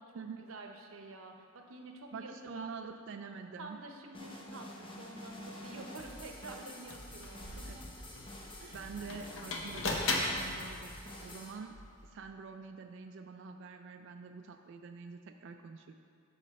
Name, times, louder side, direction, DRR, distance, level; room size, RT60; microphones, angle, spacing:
voice 1, 0.4-3.0 3.6-8.0 8.6-8.9, right 2 dB, 75° right, 3 dB, 0.7 m, -48 dB
voice 2, 2.1-3.8 7.7-7.8 8.7-11.8 12.0-15.9, right 5 dB, 60° right, 5 dB, 0.3 m, -46 dB
sound 1, 4.1-11.5, left 1 dB, 25° left, 0.9 m, -48 dB
sound 2, 6.4-6.5 6.9-12.1, left 2 dB, 65° left, 0.8 m, -38 dB
9.2 x 3.3 x 6.3 m, 2.4 s
head